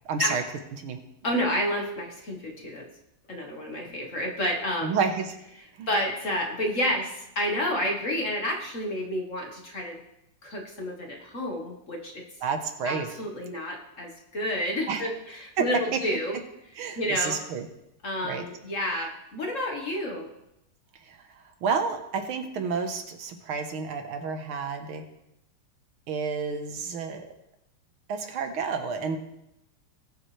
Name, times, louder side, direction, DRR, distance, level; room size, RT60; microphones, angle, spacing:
voice 1, 0.1-0.4 0.8-1.0 4.8-5.4 5.7-5.9 12.4-13.1 14.9-15.0 15.6-16.0 16.8-17.6 18.2-18.4 21.0-25.0 26.1-27.3 28.1-29.2, right 5 dB, 75° right, 5 dB, 1.9 m, -30 dB
voice 2, 1.2-2.9 3.3-4.9 5.9-10.0 10.4-12.2 12.8-16.4 17.0-17.4 18.0-20.3, left 1 dB, 40° left, 1 dB, 1.6 m, -30 dB
20.0 x 7.0 x 3.3 m, 0.84 s
omnidirectional pair, 2.3 m